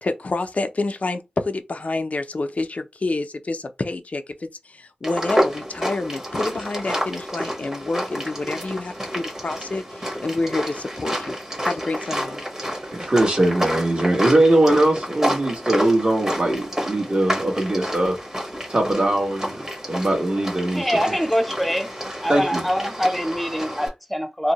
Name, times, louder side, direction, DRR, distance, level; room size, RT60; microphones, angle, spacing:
voice 1, 0.0-11.4 11.6-12.4, left 2 dB, 60° left, 0.4 m, -28 dB
sound 1, 5.0-23.9, equal, 25° right, 1.2 m, -29 dB
voice 2, 12.9-18.2 18.7-21.2 22.3-22.6, right 1 dB, 45° right, 1.3 m, -21 dB
voice 3, 20.7-21.9 22.2-24.5, equal, 5° left, 0.5 m, -24 dB
2.7 x 2.0 x 2.8 m
wide cardioid pair, 55°, 3 cm